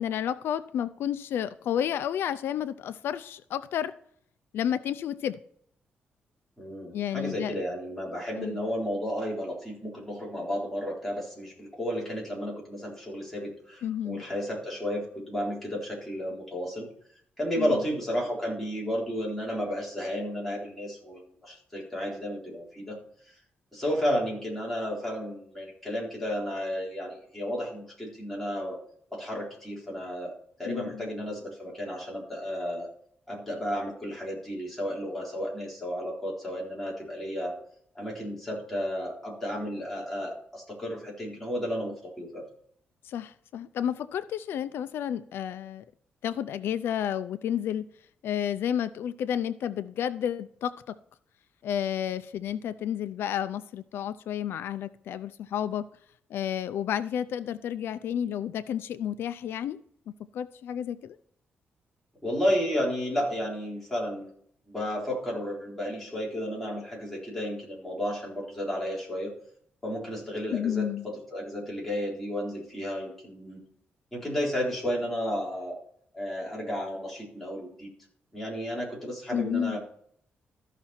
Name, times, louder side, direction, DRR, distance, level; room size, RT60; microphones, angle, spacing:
voice 1, 0.0-3.9 4.5-5.4 6.9-7.6 8.3-8.6 13.8-14.2 17.6-17.8 30.6-31.1 43.0-45.8 46.2-47.9 48.2-50.9 51.6-55.9 56.3-59.8 60.3-61.2 70.5-71.1 79.3-79.8, left 9 dB, 85° left, 13 dB, 0.4 m, -31 dB
voice 2, 6.6-16.9 17.4-23.0 23.3-23.4 23.7-28.8 29.1-30.3 30.6-32.9 33.3-37.6 37.9-42.5 62.2-64.3 64.7-69.3 69.8-73.6 74.1-75.8 76.1-77.9 78.3-79.8, equal, 5° left, -4 dB, 3.9 m, -32 dB
14.0 x 5.9 x 4.3 m, 0.64 s
cardioid pair, 140°, 4 cm